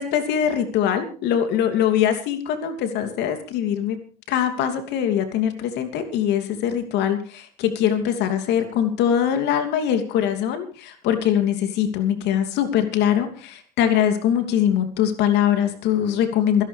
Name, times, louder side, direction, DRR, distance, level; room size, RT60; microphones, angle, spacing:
voice 1, 0.0-4.0 4.3-16.6, left 9 dB, 65° left, 7 dB, 2.9 m, -22 dB
28.0 x 11.0 x 3.5 m, 0.39 s
hypercardioid pair, 75°, 19 cm